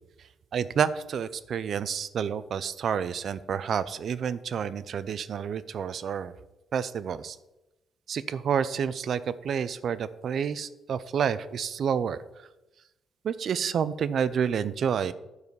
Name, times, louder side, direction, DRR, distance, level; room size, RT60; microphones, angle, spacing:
voice 1, 0.5-6.3 6.7-7.4 8.1-12.2 13.2-15.1, right 7 dB, 55° right, 15 dB, 0.5 m, -29 dB
11.0 x 4.8 x 5.2 m, 0.98 s
cardioid pair, 135°, 0 cm